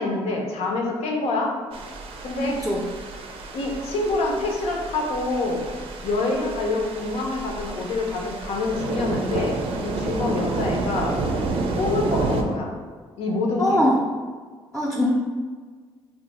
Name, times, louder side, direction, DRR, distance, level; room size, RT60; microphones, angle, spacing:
voice 1, 0.0-1.5 2.2-2.6 3.5-5.7 6.0-11.2 11.7-12.7 13.2-13.8, left 2 dB, 80° left, 0 dB, 0.7 m, -26 dB
sound 1, 1.7-12.4, right 3 dB, 60° right, 0.4 m, -30 dB
voice 2, 13.6-14.0 14.7-15.1, left 1 dB, ahead, -3 dB, 0.5 m, -21 dB
2.7 x 2.4 x 4.0 m, 1.5 s
cardioid pair, 85°, 11 cm